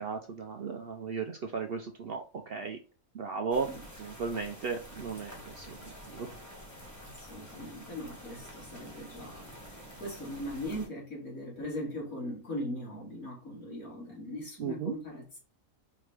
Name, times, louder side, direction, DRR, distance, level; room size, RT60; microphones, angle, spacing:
voice 1, 0.0-2.8 3.1-3.7 4.0-6.3 14.6-14.9, right 5 dB, 65° right, 0.6 m, -36 dB
sound 1, 3.5-10.9, equal, 10° left, 1.7 m, -48 dB
voice 2, 6.8-9.4 9.7-15.4, left 1 dB, 70° left, 2.7 m, -40 dB
4.7 x 3.5 x 3.2 m
omnidirectional pair, 1.5 m